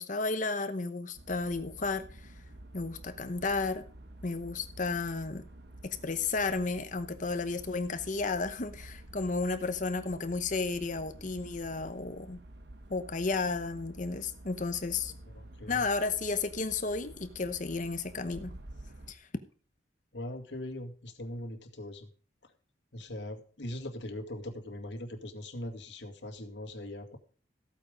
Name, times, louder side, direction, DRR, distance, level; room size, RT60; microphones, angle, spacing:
voice 1, 0.0-2.3 2.7-3.8 4.2-5.4 5.8-12.4 12.9-15.1 15.7-18.5 19.1-19.3, left 3 dB, 45° left, 9 dB, 0.9 m, -33 dB
sound 1, 1.1-19.1, right 1 dB, 60° right, 1.6 m, -50 dB
voice 2, 15.3-15.8 20.1-22.1 22.9-27.2, left 1 dB, 70° left, 5 dB, 2.2 m, -41 dB
14.5 x 8.9 x 5.2 m, 0.41 s
head